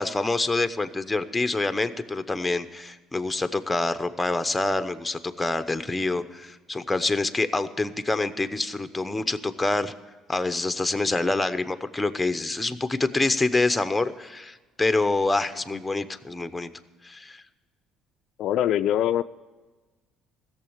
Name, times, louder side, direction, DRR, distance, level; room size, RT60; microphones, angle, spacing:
voice 1, 0.0-9.9 10.3-16.7 17.0-17.4, left 2 dB, 10° left, 10 dB, 0.8 m, -26 dB
voice 2, 18.4-19.2, left 11 dB, 65° left, 11 dB, 0.3 m, -23 dB
15.5 x 7.2 x 8.8 m, 1.3 s
supercardioid pair, 85°, 0 cm